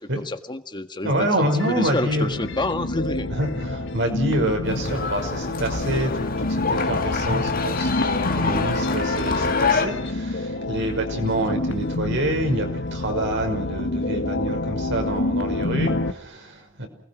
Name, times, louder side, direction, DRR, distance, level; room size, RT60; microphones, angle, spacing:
voice 1, 0.0-3.3 11.3-11.5, left 2 dB, 25° left, 8 dB, 1.7 m, -29 dB
voice 2, 1.0-2.7 3.1-16.9, right 1 dB, 65° right, 5 dB, 5.7 m, -27 dB
sound 1, 1.5-16.1, left 2 dB, 60° left, 1.7 m, -28 dB
sound 2, 4.6-9.9, left 4 dB, 45° left, 2.0 m, -27 dB
29.0 x 20.5 x 6.1 m, 0.64 s
head